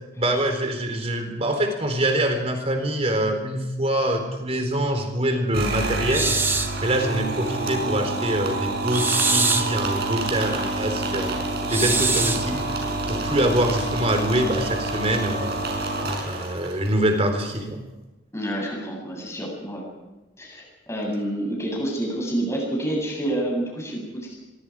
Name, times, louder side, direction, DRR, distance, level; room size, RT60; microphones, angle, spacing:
voice 1, 0.1-6.3 6.8-11.4 11.7-12.6 13.1-15.6 16.2-17.8, right 1 dB, 30° right, 5 dB, 4.1 m, -24 dB
sound 1, 5.5-16.9, right 2 dB, 55° right, 6.1 m, -27 dB
sound 2, 6.1-6.8 8.9-9.8 11.7-12.5, right 3 dB, 10° right, 1.1 m, -23 dB
voice 2, 18.3-19.8 20.4-24.4, right 1 dB, 15° left, -1 dB, 8.0 m, -28 dB
25.0 x 23.0 x 5.0 m, 1.1 s
head